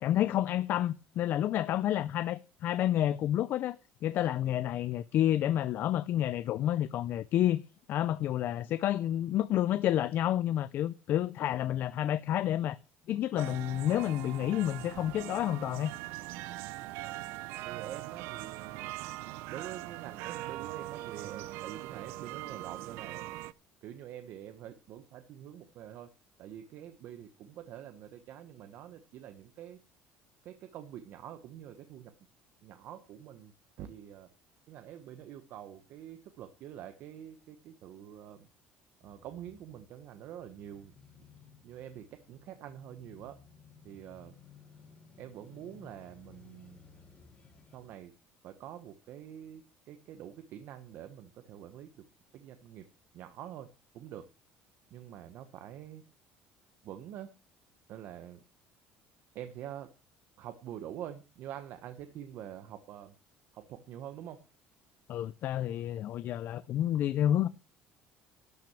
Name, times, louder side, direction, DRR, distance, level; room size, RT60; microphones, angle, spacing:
voice 1, 0.0-3.8 4.0-7.6 7.9-12.8 13.1-15.9 65.1-67.5, left 12 dB, 55° left, 0.5 m, -29 dB
sound 1, 13.4-23.5, right 17 dB, 85° right, 0.6 m, -41 dB
voice 2, 17.6-19.0 19.5-23.4 23.8-26.1 26.4-29.8 30.4-32.1 32.6-34.3 34.7-38.5 39.0-40.9 41.6-43.4 43.8-44.4 45.2-46.8 47.7-48.1 48.4-52.0 52.3-52.9 53.1-53.7 53.9-54.3 54.9-56.0 56.8-57.3 57.9-58.4 59.3-59.9 60.4-63.1 63.5-64.4, right 10 dB, 60° right, 1.1 m, -46 dB
Male speech man speaking / Motorcycle / Idling, 39.0-47.9, left 5 dB, 30° left, 3.4 m, -58 dB
12.0 x 6.1 x 7.4 m
cardioid pair, 135°, 4 cm